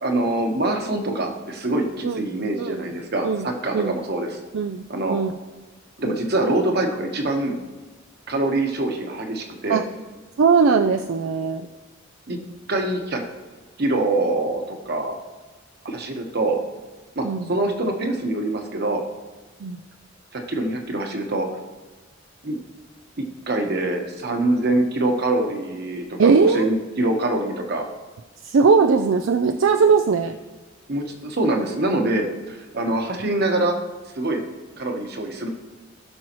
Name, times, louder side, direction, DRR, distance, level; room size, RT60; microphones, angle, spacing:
voice 1, 0.0-4.4 4.9-5.2 6.0-7.6 8.3-9.8 12.3-12.4 12.7-13.2 13.8-15.2 15.8-16.6 17.2-19.0 20.3-21.5 22.4-22.6 23.2-27.8 30.9-33.7 34.2-34.4 34.8-35.5, right 2 dB, 55° right, 3 dB, 1.2 m, -24 dB
voice 2, 4.5-5.4 9.7-9.8 10.4-11.7 17.2-17.5 19.6-19.8 26.2-26.7 28.4-30.4, right 5 dB, 70° right, 6 dB, 0.4 m, -19 dB
16.0 x 6.2 x 3.0 m, 1.3 s
head